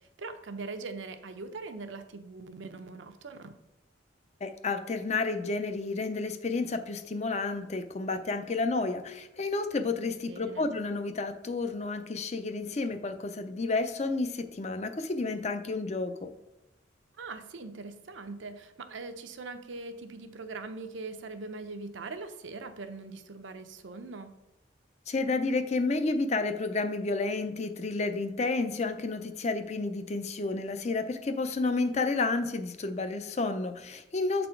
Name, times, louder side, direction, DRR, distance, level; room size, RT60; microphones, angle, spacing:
voice 1, 0.0-3.5 10.3-10.7 17.2-24.3, right 3 dB, 85° right, 8 dB, 0.7 m, -41 dB
voice 2, 4.4-16.3 25.1-34.5, left 3 dB, 35° left, 9 dB, 0.5 m, -31 dB
7.5 x 4.1 x 4.5 m, 0.95 s
head